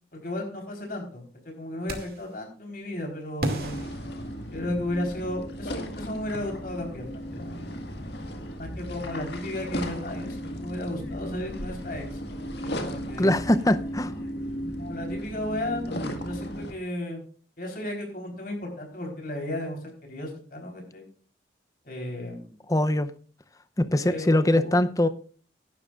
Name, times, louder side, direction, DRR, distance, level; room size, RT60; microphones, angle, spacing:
voice 1, 0.1-3.8 4.5-7.5 8.6-12.2 12.6-13.4 14.8-17.2 17.6-21.1 21.8-22.6 24.0-24.8, left 1 dB, 50° left, 2 dB, 4.0 m, -34 dB
sound 1, 1.9-2.3 3.4-4.9, right 1 dB, 55° right, 2.4 m, -34 dB
sound 2, 3.6-16.7, equal, 65° left, 1.8 m, -35 dB
voice 2, 13.2-14.1 22.7-23.1 23.8-25.1, left 1 dB, 20° left, 13 dB, 0.6 m, -22 dB
16.5 x 11.5 x 2.5 m, 0.43 s
head